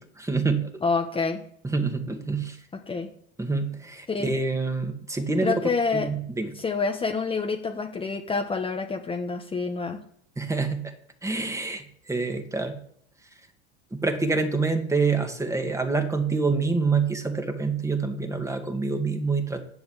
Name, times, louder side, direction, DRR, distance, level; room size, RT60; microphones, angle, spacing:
voice 1, 0.0-0.7 1.6-2.6 3.4-6.5 10.4-10.9 11.2-12.8 13.9-19.6, right 4 dB, 10° right, 6 dB, 2.1 m, -27 dB
voice 2, 0.8-1.4 2.9-3.1 4.1-4.3 5.4-6.1 6.5-10.0, left 4 dB, 15° left, 3 dB, 1.4 m, -27 dB
11.0 x 7.8 x 7.5 m, 0.66 s
hypercardioid pair, 105°, 32 cm